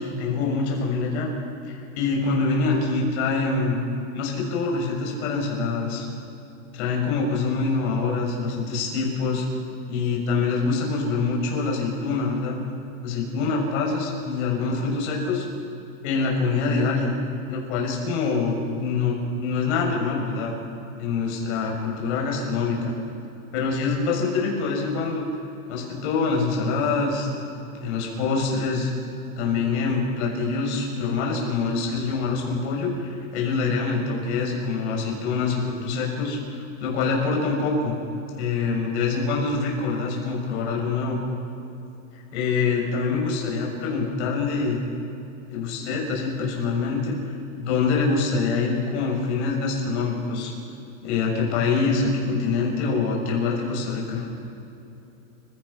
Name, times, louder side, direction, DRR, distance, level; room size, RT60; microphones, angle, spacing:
voice 1, 0.2-1.3 1.7-3.8 4.1-6.0 6.7-9.4 9.9-12.6 13.0-15.4 16.0-17.1 17.4-20.5 21.0-22.9 23.5-25.3 25.7-28.9 29.4-38.0 38.4-41.2 42.1-44.8 45.5-50.5 51.0-54.3, left 4 dB, 55° left, -1 dB, 6.7 m, -25 dB
30.0 x 17.0 x 5.9 m, 2.9 s
supercardioid pair, 150°, 42 cm